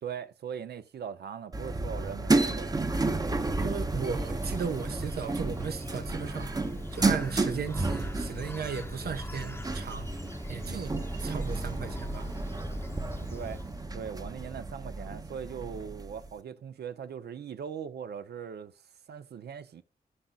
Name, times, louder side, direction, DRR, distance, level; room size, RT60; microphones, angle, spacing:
voice 1, 0.0-3.0 10.6-10.9 13.2-13.6 13.9-19.8, right 7 dB, 90° right, 0.7 m, -40 dB
sound 1, 1.5-16.3, right 3 dB, 25° right, 0.7 m, -32 dB
voice 2, 3.6-6.6 6.9-10.1 10.5-10.9 11.2-12.3, right 6 dB, 75° right, 1.1 m, -36 dB
Bird, 4.1-14.0, left 2 dB, 15° left, 0.7 m, -42 dB
10.0 x 9.7 x 2.3 m
wide cardioid pair, 120°, 16 cm